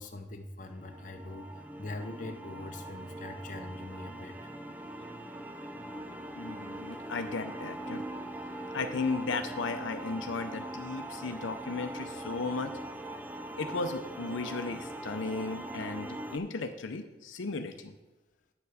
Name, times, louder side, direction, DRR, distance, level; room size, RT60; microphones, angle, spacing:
voice 1, 0.0-1.5 1.8-4.3, left 2 dB, 40° left, 4 dB, 0.8 m, -42 dB
sound 1, 0.6-16.4, right 1 dB, 10° right, 0.4 m, -41 dB
voice 2, 6.4-8.1 8.7-12.7 13.5-17.9, left 3 dB, 75° left, 7 dB, 0.6 m, -35 dB
9.2 x 7.1 x 4.9 m, 1.1 s
head